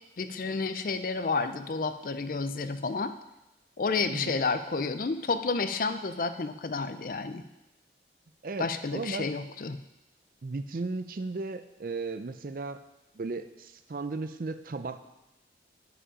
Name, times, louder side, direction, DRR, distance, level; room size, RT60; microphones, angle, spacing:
voice 1, 0.2-3.1 3.8-7.4 8.6-9.8, left 4 dB, 50° left, 11 dB, 0.5 m, -30 dB
voice 2, 8.4-9.3 10.4-12.8 13.1-15.0, right 3 dB, 50° right, 10 dB, 0.5 m, -35 dB
9.9 x 5.0 x 5.1 m, 0.97 s
head